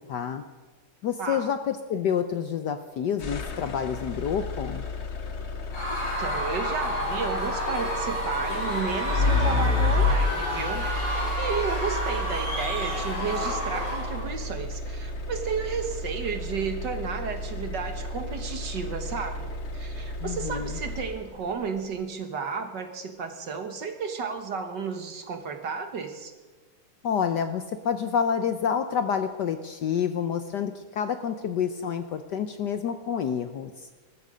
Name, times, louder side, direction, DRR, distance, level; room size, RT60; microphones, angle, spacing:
voice 1, 0.1-0.4 1.0-4.8 20.2-20.8 27.0-33.9, left 7 dB, 65° left, 9 dB, 1.1 m, -28 dB
voice 2, 1.2-1.5 6.2-26.3, right 5 dB, 55° right, 6 dB, 2.0 m, -33 dB
sound 1, 3.2-21.5, left 3 dB, 40° left, 1.0 m, -31 dB
Screaming / Cheering / Crowd, 5.7-14.3, equal, 90° left, 6.3 m, -30 dB
20.0 x 14.0 x 5.1 m, 1.3 s
omnidirectional pair, 2.4 m